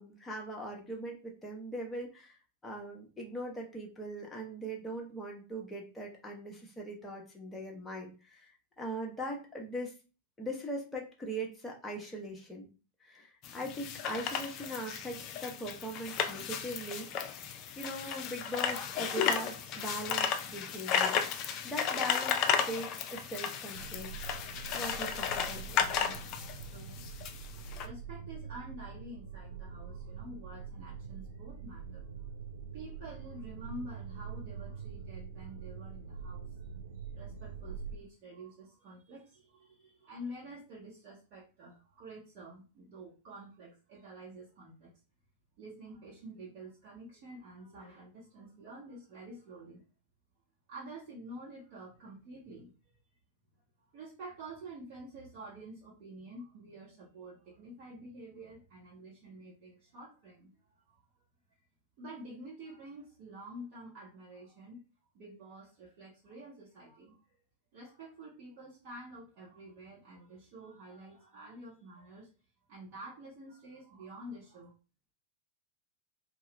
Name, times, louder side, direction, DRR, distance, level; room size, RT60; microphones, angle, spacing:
voice 1, 0.0-2.4 2.6-9.9 10.4-12.7 13.0-17.1 17.8-24.2 24.7-26.2, right 1 dB, 10° left, -1 dB, 0.9 m, -41 dB
sound 1, 13.4-27.9, left 7 dB, 40° left, 0.4 m, -34 dB
sound 2, 23.7-38.0, right 6 dB, 65° right, 0.4 m, -44 dB
voice 2, 25.6-27.3 27.8-32.1 32.7-36.6 36.9-44.9 45.6-49.8 50.7-52.7 53.9-60.8 62.0-64.8 65.1-67.2 67.7-72.3 72.7-74.7, right 1 dB, 45° right, -7 dB, 1.1 m, -49 dB
2.8 x 2.3 x 3.1 m, 0.33 s
figure-of-eight pair, 90°, 0 cm